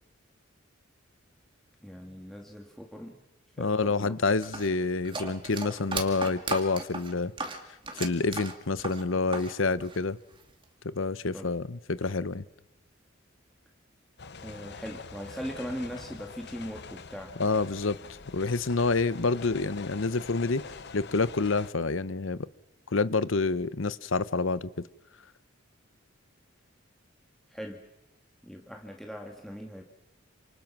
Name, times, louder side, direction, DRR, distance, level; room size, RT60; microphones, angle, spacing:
voice 1, 1.8-3.2 3.6-4.1 11.3-11.5 14.4-17.4 27.5-27.8 28.4-29.8, equal, ahead, 1 dB, 2.0 m, -40 dB
voice 2, 3.6-7.3 7.9-10.2 10.8-12.4 17.4-18.0 18.3-20.6 20.9-22.5 22.9-24.7, left 3 dB, 70° left, 17 dB, 0.9 m, -28 dB
sound 1, 4.4-9.5 9.8-10.6, right 3 dB, 25° right, 2.5 m, -36 dB
sound 2, 14.2-21.7, left 4 dB, 55° left, 1.0 m, -45 dB
28.5 x 27.5 x 6.1 m, 0.94 s
head